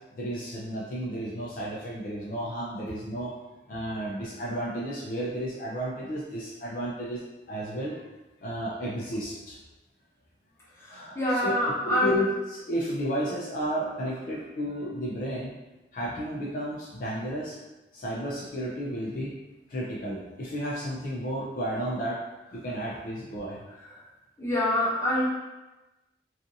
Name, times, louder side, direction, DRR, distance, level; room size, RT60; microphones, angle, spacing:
voice 1, 0.1-3.3 3.7-8.0 8.4-9.6 10.9-15.5 15.9-17.6 17.9-19.3 19.7-22.2 22.5-23.7, equal, 50° left, -5 dB, 0.4 m, -32 dB
voice 2, 10.8-12.2 24.4-25.3, left 1 dB, 15° left, -8 dB, 0.7 m, -26 dB
2.5 x 2.4 x 2.6 m, 1.1 s
head